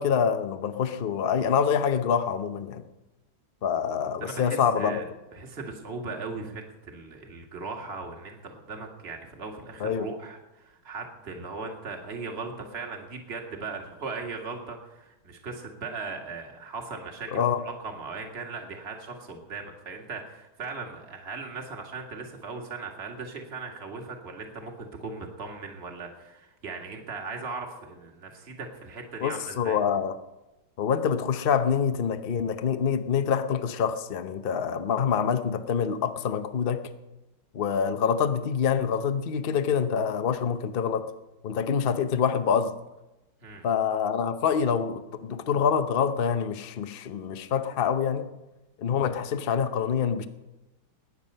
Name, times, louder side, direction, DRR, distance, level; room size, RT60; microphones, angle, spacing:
voice 1, 0.0-2.8 3.6-5.0 9.8-10.1 17.3-17.6 29.2-30.2 30.8-36.8 37.5-41.1 41.4-42.7 43.6-48.3 48.8-50.3, left 7 dB, 70° left, 9 dB, 0.5 m, -26 dB
voice 2, 4.2-5.0 5.3-29.8 43.4-43.7, right 4 dB, 30° right, 2 dB, 2.0 m, -38 dB
20.5 x 9.2 x 5.5 m, 1.0 s
omnidirectional pair, 2.2 m